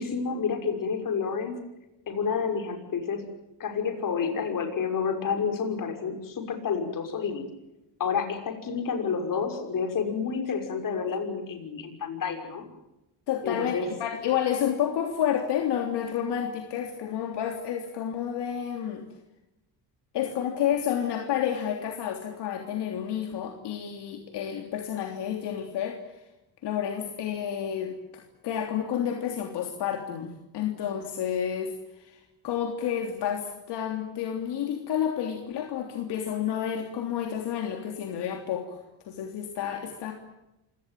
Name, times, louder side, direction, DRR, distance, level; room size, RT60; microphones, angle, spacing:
voice 1, 0.0-1.6 2.1-3.3 3.6-7.4 8.0-12.6 13.4-13.9, left 6 dB, 50° left, 5 dB, 6.0 m, -29 dB
voice 2, 13.3-19.0 20.1-26.0 26.6-40.1, left 9 dB, 70° left, 3 dB, 3.4 m, -30 dB
26.5 x 18.0 x 9.3 m, 0.94 s
cardioid pair, 115°, 42 cm